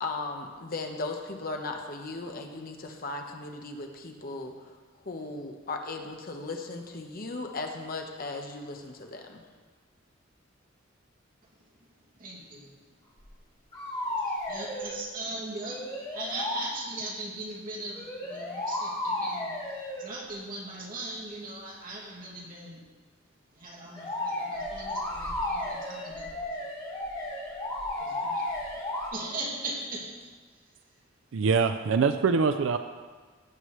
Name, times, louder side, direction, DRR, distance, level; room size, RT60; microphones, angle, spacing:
voice 1, 0.0-4.7 5.0-9.4, left 3 dB, 50° left, 3 dB, 1.1 m, -37 dB
voice 2, 12.2-12.7 14.3-15.8 16.1-22.8 23.6-26.6 28.0-28.5 29.1-30.3 31.9-32.1, right 2 dB, 45° right, -5 dB, 2.5 m, -39 dB
sound 1, 13.2-13.3 13.7-15.0 15.6-16.6 17.9-20.1 23.9-29.1, left 1 dB, 25° left, 2.9 m, -33 dB
voice 3, 31.3-32.8, right 5 dB, 70° right, 9 dB, 0.4 m, -24 dB
16.5 x 7.6 x 3.2 m, 1.4 s
head